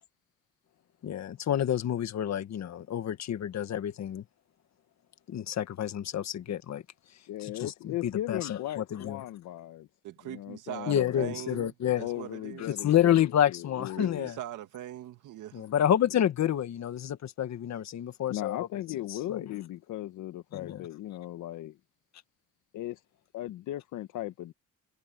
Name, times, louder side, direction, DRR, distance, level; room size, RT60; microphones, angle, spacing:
voice 1, 1.0-4.2 5.3-6.8 7.4-9.2 10.9-12.0 12.6-14.3 15.5-18.7 19.1-19.5 20.5-20.9, left 10 dB, 65° left, 1.8 m, -29 dB
voice 2, 7.3-9.9 10.2-11.4 12.0-14.3 18.3-21.8 22.7-23.0 23.3-24.5, left 14 dB, 85° left, 1.3 m, -37 dB
voice 3, 10.0-12.8 14.0-15.7, right 13 dB, 85° right, 2.2 m, -41 dB
cardioid pair, 90°, 30 cm